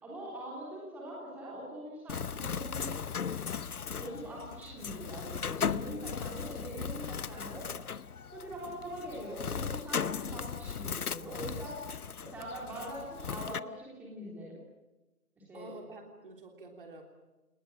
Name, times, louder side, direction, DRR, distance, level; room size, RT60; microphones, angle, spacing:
voice 1, 0.0-2.9 3.9-7.7 8.3-11.8 12.2-14.6 15.4-15.7, right 1 dB, 5° right, -5 dB, 3.4 m, -43 dB
Bird, 2.1-13.6, left 6 dB, 70° left, 1.0 m, -37 dB
voice 2, 6.3-6.9 15.5-17.0, right 2 dB, 35° right, 4 dB, 3.4 m, -49 dB
30.0 x 19.5 x 7.5 m, 1.1 s
figure-of-eight pair, 165°, 45 cm